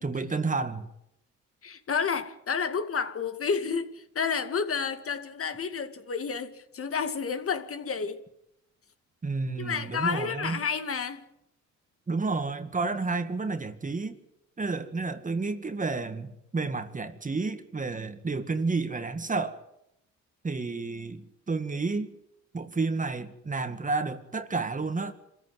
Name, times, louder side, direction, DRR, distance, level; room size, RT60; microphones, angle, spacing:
voice 1, 0.0-0.9 9.2-10.6 12.1-14.2 14.6-19.6 20.4-22.1 22.5-25.1, right 3 dB, 25° right, 2.1 m, -30 dB
voice 2, 1.6-8.2 9.6-11.2, left 6 dB, 50° left, 2.4 m, -30 dB
26.0 x 15.0 x 9.6 m
cardioid pair, 90°, 30 cm